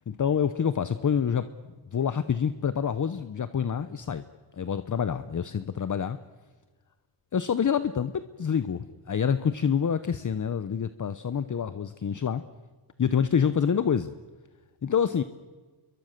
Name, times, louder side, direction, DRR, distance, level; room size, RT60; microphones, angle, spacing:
voice 1, 0.1-1.5 1.9-4.2 4.5-6.2 7.3-12.4 13.0-14.2 14.8-15.2, left 7 dB, 40° left, 13 dB, 0.8 m, -27 dB
29.0 x 23.0 x 6.7 m, 1.3 s
wide cardioid pair, 125°, 48 cm